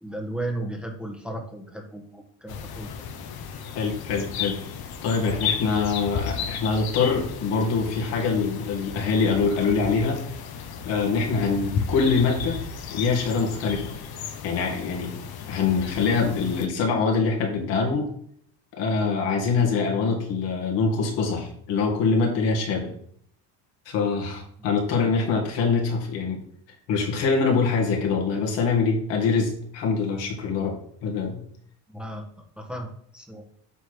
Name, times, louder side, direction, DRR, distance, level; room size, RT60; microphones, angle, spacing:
voice 1, 0.0-2.9 24.6-24.7 31.9-32.3 32.6-33.5, right 1 dB, ahead, 2 dB, 1.3 m, -35 dB
sound 1, 2.5-16.7, left 7 dB, 55° left, 1.2 m, -34 dB
voice 2, 3.7-4.6 5.0-10.2 10.8-12.6 12.9-13.9 14.4-15.1 15.5-18.1 18.7-22.9 23.9-26.4 26.9-31.4, left 4 dB, 70° left, 0 dB, 2.5 m, -24 dB
8.0 x 3.2 x 6.2 m, 0.64 s
supercardioid pair, 90°, 45 cm